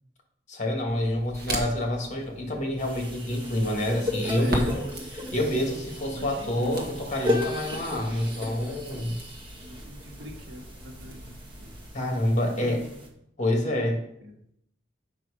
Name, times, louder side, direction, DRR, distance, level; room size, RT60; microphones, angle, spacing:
voice 1, 0.5-4.8 5.3-9.2 11.9-12.8 13.4-14.0, left 1 dB, 40° left, 1 dB, 1.8 m, -27 dB
Crackle, 0.9-11.9, right 1 dB, 55° right, 1.6 m, -39 dB
sound 1, 2.8-13.1, left 2 dB, 25° right, 1.3 m, -36 dB
voice 2, 4.4-4.9 6.1-6.8 9.6-11.5 12.6-13.0 13.6-13.9 14.2-14.3, equal, 75° right, 0 dB, 1.8 m, -41 dB
7.6 x 5.7 x 4.9 m, 0.74 s
head